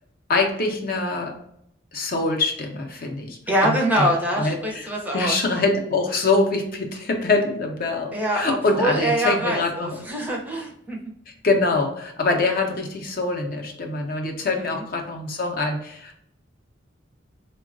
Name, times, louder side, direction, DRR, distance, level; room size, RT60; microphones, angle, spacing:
voice 1, 0.3-1.3 1.9-3.4 3.6-10.0 11.4-16.2, left 3 dB, 50° left, 2 dB, 0.5 m, -24 dB
voice 2, 3.5-5.4 8.1-11.0 14.6-14.7, equal, 10° right, -1 dB, 0.5 m, -24 dB
3.7 x 2.2 x 2.4 m, 0.73 s
head